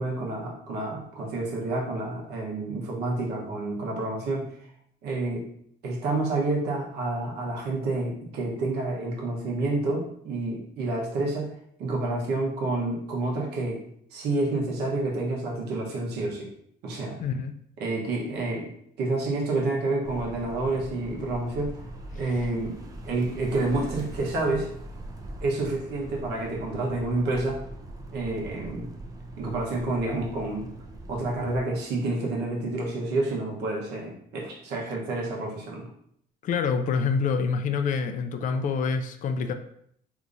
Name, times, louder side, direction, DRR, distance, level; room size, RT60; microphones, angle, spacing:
voice 1, 0.0-4.5 5.0-5.4 5.8-11.5 11.8-13.8 14.1-16.5 16.8-17.2 17.8-18.7 19.0-21.8 22.1-22.8 23.0-24.7 25.4-27.6 28.1-28.9 29.4-30.7 31.1-35.9, right 2 dB, 80° right, -2 dB, 1.0 m, -29 dB
voice 2, 17.2-17.5 36.4-39.5, left 5 dB, 50° left, 7 dB, 0.4 m, -26 dB
sound 1, 20.0-31.6, right 1 dB, 20° right, 0.5 m, -41 dB
3.5 x 2.9 x 2.5 m, 0.67 s
cardioid pair, 110°, 17 cm